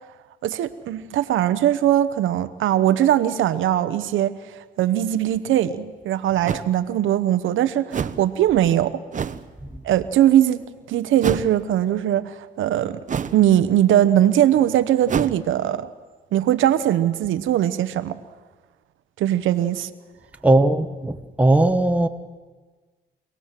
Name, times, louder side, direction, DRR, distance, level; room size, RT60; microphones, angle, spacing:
voice 1, 0.4-4.4 4.8-9.0 9.8-13.0 13.3-15.9 16.3-18.2 19.2-19.9, right 11 dB, 80° right, 11 dB, 1.0 m, -20 dB
sound 1, 5.5-5.6 6.5-6.7 7.9-8.3 9.1-9.5 11.2-11.6 13.1-13.5 15.1-15.4, right 7 dB, 40° right, 0.9 m, -26 dB
voice 2, 20.4-22.1, right 2 dB, 5° right, 6 dB, 1.3 m, -18 dB
26.0 x 18.5 x 7.6 m, 1.4 s
cardioid pair, 90°, 20 cm